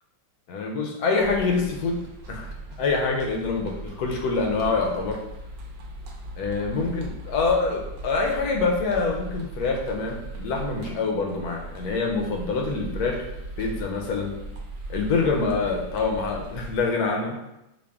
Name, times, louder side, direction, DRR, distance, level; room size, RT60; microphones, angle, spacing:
voice 1, 0.5-2.0 2.3-2.5 2.8-5.2 6.4-13.3 13.6-14.3 14.9-17.4, left 4 dB, 70° left, 1 dB, 0.9 m, -25 dB
sound 1, 1.2-16.8, right 2 dB, 75° right, 1.2 m, -38 dB
5.1 x 2.3 x 2.3 m, 0.92 s
omnidirectional pair, 2.0 m